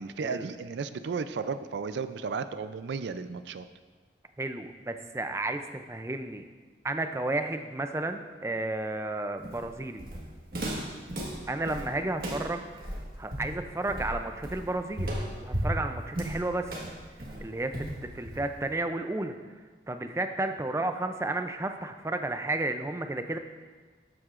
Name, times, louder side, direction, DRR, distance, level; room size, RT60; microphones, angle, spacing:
voice 1, 0.0-3.7, right 5 dB, 85° right, 11 dB, 0.4 m, -34 dB
voice 2, 4.4-6.4 6.8-10.0 11.5-15.1 15.4-16.8 17.4-19.6 19.9-23.4, right 2 dB, 15° right, 7 dB, 0.4 m, -32 dB
Walk footsteps, 9.4-18.7, right 1 dB, 55° right, 1.5 m, -35 dB
12.0 x 7.7 x 2.5 m, 1.4 s
head